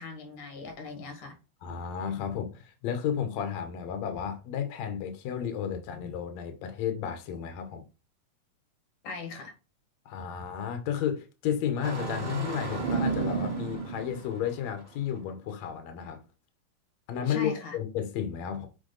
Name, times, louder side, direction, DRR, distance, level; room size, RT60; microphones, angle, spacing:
voice 1, 0.0-1.4 9.0-9.5 17.3-17.8, left 4 dB, 85° left, 3.0 m, -40 dB
voice 2, 1.6-7.8 10.1-16.2 17.1-18.7, left 8 dB, 70° left, 2.1 m, -32 dB
Engine starting, 11.8-14.8, right 4 dB, 20° right, 1.5 m, -32 dB
6.5 x 4.5 x 3.8 m
omnidirectional pair, 3.4 m